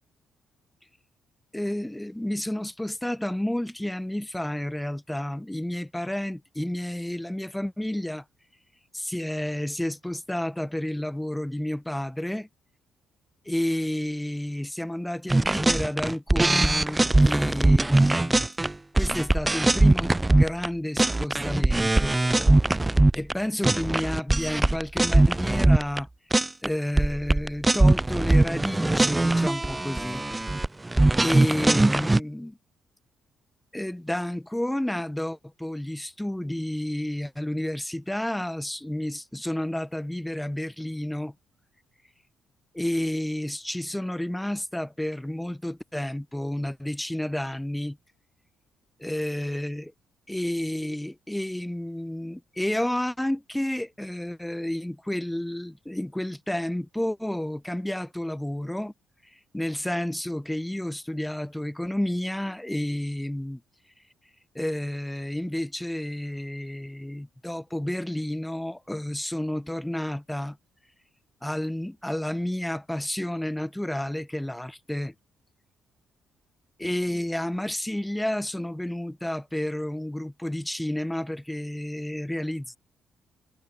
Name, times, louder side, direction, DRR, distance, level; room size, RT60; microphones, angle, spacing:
voice 1, 1.5-8.2 8.9-12.5 13.4-18.5 18.9-26.1 26.6-30.2 31.2-32.6 33.7-41.3 42.7-48.0 49.0-49.9 50.3-58.9 59.2-63.6 64.5-70.6 71.4-75.1 76.8-82.8, left 1 dB, 5° left, 7.9 m, -31 dB
sound 1, 15.3-20.7 21.0-23.3 23.6-26.0 26.3-26.7 27.0-32.2, right 2 dB, 15° right, 1.1 m, -21 dB
cardioid pair, 90°, 0 cm